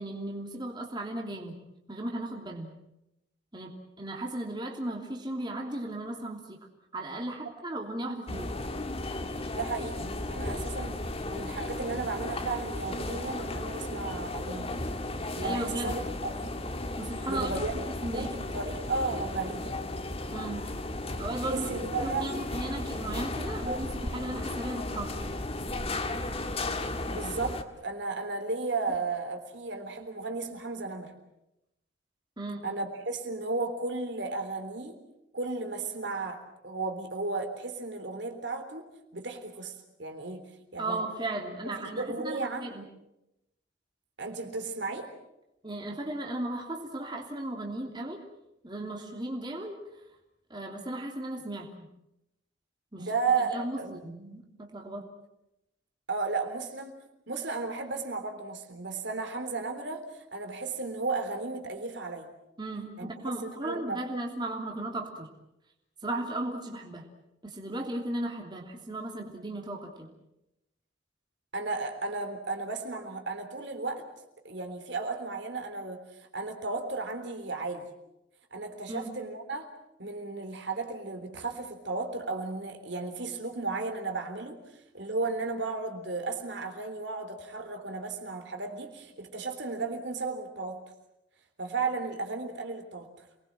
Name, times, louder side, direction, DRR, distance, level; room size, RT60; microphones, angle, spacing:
voice 1, 0.0-1.6 1.9-2.7 3.5-3.7 4.0-6.6 6.9-8.6 15.4-16.0 17.0-17.5 18.0-18.3 20.3-20.7 21.2-21.7 22.0-25.1 32.4-32.7 40.8-42.8 45.6-48.2 48.6-49.8 50.5-51.9 52.9-53.1 53.4-55.1 62.6-65.3 66.0-67.1 67.4-70.1 78.9-79.1, right 1 dB, 25° right, 1 dB, 3.0 m, -36 dB
sound 1, 8.3-27.6, left 2 dB, 30° left, 1.8 m, -35 dB
voice 2, 9.5-11.0 11.3-14.8 15.4-16.3 17.3-19.7 21.4-22.4 27.1-31.1 32.6-35.0 35.3-38.8 39.1-40.5 40.7-41.0 41.6-42.7 44.2-45.1 53.0-54.0 56.1-62.3 63.0-63.1 63.4-64.2 71.5-74.1 74.4-76.0 76.3-77.9 78.5-79.7 80.0-84.6 84.9-90.8 91.6-93.2, right 3 dB, 65° right, 5 dB, 3.7 m, -34 dB
28.5 x 20.5 x 7.5 m, 0.89 s
head